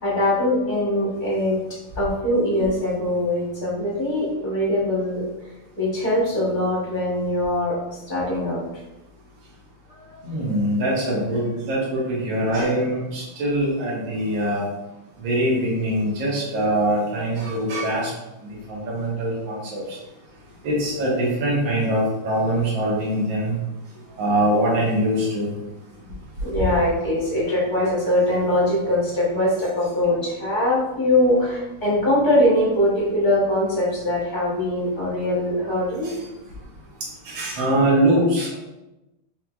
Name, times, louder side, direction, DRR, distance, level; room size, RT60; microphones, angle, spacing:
voice 1, 0.0-1.6 2.0-5.3 5.8-8.6 9.9-10.2 24.0-24.2 26.0-26.1 26.4-36.1, left 1 dB, 35° left, -6 dB, 0.7 m, -22 dB
voice 2, 10.2-14.7 15.2-18.1 18.7-20.0 20.6-23.6 24.2-25.5 36.0-36.2 37.3-38.6, right 1 dB, 65° right, -6 dB, 1.7 m, -23 dB
4.7 x 2.9 x 2.3 m, 0.96 s
omnidirectional pair, 2.3 m